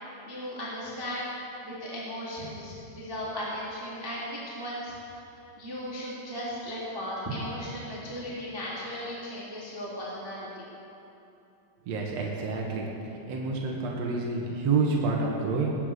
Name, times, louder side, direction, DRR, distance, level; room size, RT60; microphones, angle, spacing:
voice 1, 0.2-1.3 1.6-4.9 5.6-10.6, equal, 5° right, -8 dB, 2.1 m, -36 dB
voice 2, 11.8-12.9 13.3-15.7, right 4 dB, 75° right, -2 dB, 1.5 m, -28 dB
19.5 x 9.4 x 6.7 m, 2.8 s
omnidirectional pair, 5.6 m